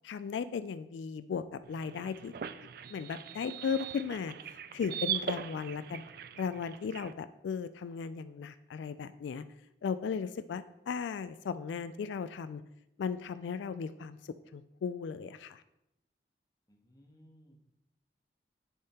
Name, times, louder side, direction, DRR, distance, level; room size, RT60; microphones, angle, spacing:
voice 1, 0.0-2.3 2.9-6.0 6.4-9.4 9.8-12.6 13.0-14.2 14.5-15.6, left 6 dB, 85° left, 13 dB, 0.3 m, -36 dB
sound 1, 1.6-7.1, right 9 dB, 55° right, 0.3 m, -40 dB
voice 2, 16.7-17.6, equal, 20° left, 2 dB, 1.0 m, -60 dB
10.0 x 3.5 x 4.2 m, 0.86 s
head